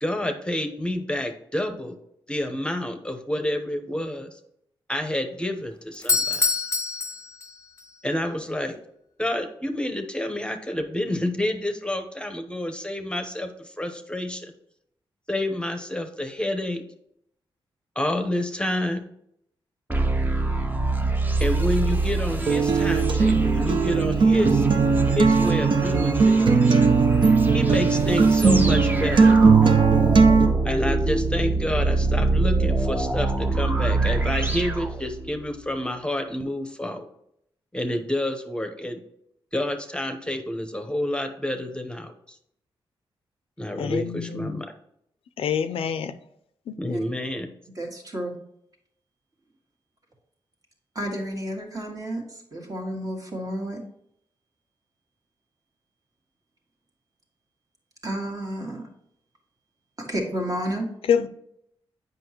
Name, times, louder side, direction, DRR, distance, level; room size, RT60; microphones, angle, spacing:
voice 1, 0.0-1.9 2.3-4.4 4.9-6.5 8.0-8.8 9.2-14.5 15.3-16.8 18.0-19.1 21.4-24.7 25.2-26.7 27.5-29.4 30.6-37.0 37.7-39.0 39.5-42.4 43.6-44.7 46.8-47.5, left 1 dB, 10° left, 6 dB, 0.9 m, -29 dB
Doorbell, 5.9-7.9, left 4 dB, 30° left, 0.7 m, -25 dB
sound 1, 19.9-35.5, right 2 dB, 20° right, 0.8 m, -25 dB
Acoustic guitar, 22.5-30.5, right 4 dB, 60° right, 0.8 m, -18 dB
voice 2, 43.8-44.5 45.4-46.1 46.7-46.8 61.1-61.3, left 7 dB, 75° left, 12 dB, 0.4 m, -25 dB
voice 3, 47.8-48.3 51.0-53.8 58.0-58.8 60.0-60.9, right 1 dB, 40° right, 1 dB, 1.8 m, -31 dB
7.7 x 5.4 x 2.9 m, 0.74 s
cardioid pair, 60°, 10 cm